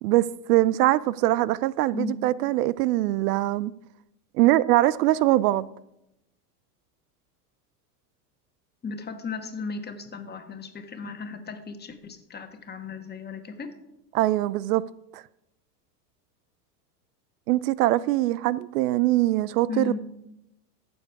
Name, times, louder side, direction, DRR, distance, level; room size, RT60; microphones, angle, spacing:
voice 1, 0.0-3.7 4.3-5.7 14.1-14.8 15.1-15.2 17.5-19.9, right 16 dB, 75° right, 0.6 m, -22 dB
voice 2, 8.8-13.7 19.7-20.0, left 5 dB, 20° left, 1.4 m, -35 dB
14.0 x 7.1 x 4.7 m
hypercardioid pair, 110°, 47 cm